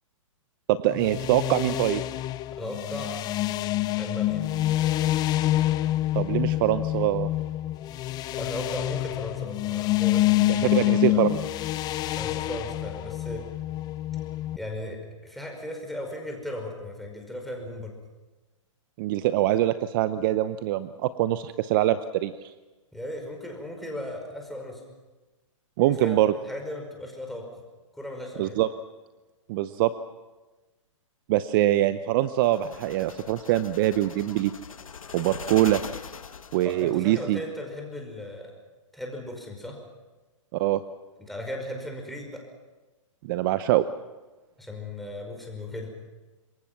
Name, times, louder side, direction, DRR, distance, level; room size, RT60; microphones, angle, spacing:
voice 1, 0.7-2.0 6.1-7.3 10.5-11.4 19.0-22.5 25.8-26.3 28.4-28.7 29.5-29.9 31.3-34.5 35.1-35.8 36.5-37.4 40.5-40.8 43.2-43.8, right 14 dB, 40° right, 13 dB, 0.8 m, -24 dB
sound 1, 0.9-14.6, left 15 dB, 25° left, 0.7 m, -27 dB
voice 2, 2.5-3.2 4.0-4.4 8.3-11.3 12.2-13.5 14.6-18.0 22.9-24.8 25.8-27.6 27.9-28.5 36.6-38.5 38.9-39.8 41.2-42.5 44.6-45.9, left 1 dB, ahead, 1 dB, 5.2 m, -36 dB
sound 2, 32.4-37.0, left 6 dB, 90° left, 1.5 m, -41 dB
27.0 x 22.5 x 6.0 m, 1.2 s
hypercardioid pair, 135°, 17 cm